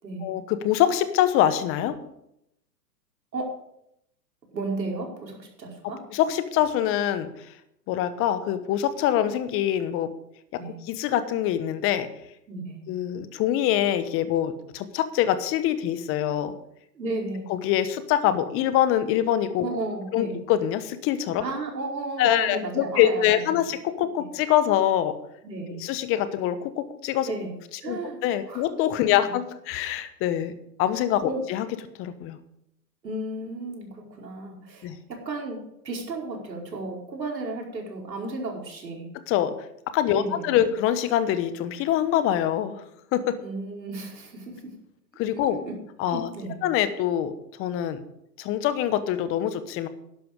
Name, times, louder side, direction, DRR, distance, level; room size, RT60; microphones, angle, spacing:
voice 1, 0.2-1.9 6.1-7.3 7.9-10.1 10.5-12.1 12.9-16.5 17.5-19.7 20.1-21.4 22.2-25.1 25.8-27.3 27.8-30.5 30.8-31.7 32.0-32.4 34.8-35.0 39.3-39.5 39.9-42.8 43.1-43.4 45.2-45.6 46.0-46.3 46.6-47.3 47.6-48.0 48.4-49.9, left 11 dB, 25° left, 12 dB, 1.1 m, -24 dB
voice 2, 4.5-6.0 10.6-10.8 12.5-12.8 16.9-17.5 19.6-20.4 21.4-23.4 24.2-24.3 25.4-25.8 27.3-27.5 27.8-28.2 28.5-28.7 29.0-29.2 31.2-31.4 33.0-35.6 35.8-39.1 40.1-40.6 43.4-44.7 45.5-45.7 46.1-46.6, right 3 dB, 85° right, -1 dB, 4.8 m, -33 dB
12.0 x 10.5 x 5.2 m, 0.78 s
hypercardioid pair, 120°, 50 cm